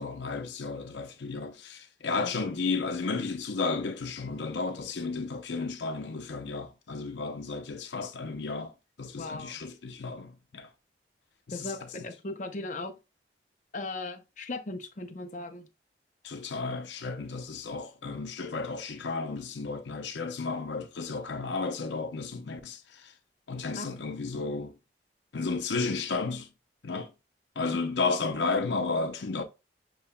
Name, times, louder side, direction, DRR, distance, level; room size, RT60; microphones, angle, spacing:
voice 1, 0.0-8.7 9.0-10.7 11.5-11.9 16.2-23.1 23.5-24.8 25.3-26.5 26.8-27.1 27.6-29.4, left 4 dB, 90° left, 0.7 m, -33 dB
voice 2, 9.2-9.6 11.5-12.9 13.7-15.7 23.8-23.9, left 2 dB, 45° left, 0.7 m, -37 dB
6.9 x 2.9 x 2.2 m
head